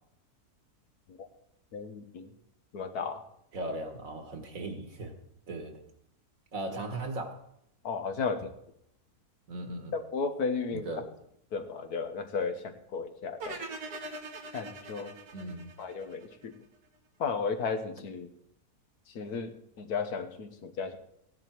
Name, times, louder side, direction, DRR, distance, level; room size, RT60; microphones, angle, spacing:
voice 1, 1.7-2.3 2.7-3.2 7.8-8.5 9.9-10.9 11.5-13.6 14.5-15.1 15.8-16.5 17.2-18.3 19.1-21.0, left 5 dB, 75° left, 8 dB, 1.6 m, -34 dB
voice 2, 3.5-5.1 5.5-5.8 6.5-7.4 9.5-9.9 10.7-11.1 15.3-15.7, right 2 dB, 60° right, 5 dB, 2.0 m, -37 dB
sound 1, 13.4-16.5, right 2 dB, 75° right, 2.1 m, -42 dB
16.0 x 10.5 x 4.6 m, 0.75 s
omnidirectional pair, 1.6 m